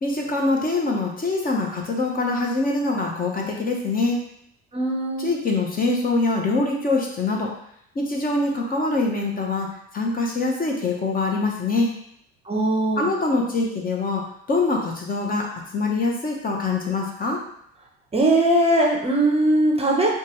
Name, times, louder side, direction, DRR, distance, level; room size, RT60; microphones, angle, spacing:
voice 1, 0.0-4.2 5.2-7.5 7.9-9.7 9.9-12.0 13.0-14.2 14.5-17.4, left 3 dB, 30° left, 0 dB, 0.8 m, -24 dB
voice 2, 4.7-5.3 12.5-13.1 18.1-20.1, right 1 dB, 20° right, -1 dB, 0.7 m, -20 dB
4.6 x 2.3 x 3.0 m, 0.71 s
supercardioid pair, 95°, 31 cm